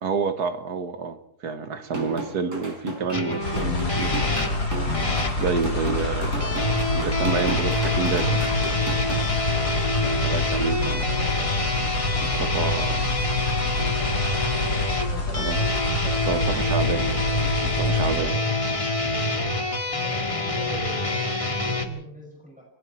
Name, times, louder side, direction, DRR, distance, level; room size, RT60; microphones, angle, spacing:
voice 1, 0.0-1.2 1.4-4.5 5.4-8.4 10.0-11.0 12.2-13.0 13.8-14.0 15.4-15.6 16.3-17.1 17.4-18.3, right 5 dB, 80° right, 9 dB, 1.9 m, -29 dB
sound 1, 1.8-9.2, right 2 dB, 50° right, 4.9 m, -34 dB
sound 2, 3.1-5.4 6.4-21.8, left 2 dB, 20° left, 1.9 m, -26 dB
sound 3, 3.4-18.2, left 2 dB, 85° left, 5.1 m, -28 dB
voice 2, 9.5-11.7 12.1-12.7 15.0-18.5 19.8-22.6, equal, 5° right, -2 dB, 6.0 m, -43 dB
28.5 x 22.0 x 4.4 m, 0.73 s
omnidirectional pair, 1.7 m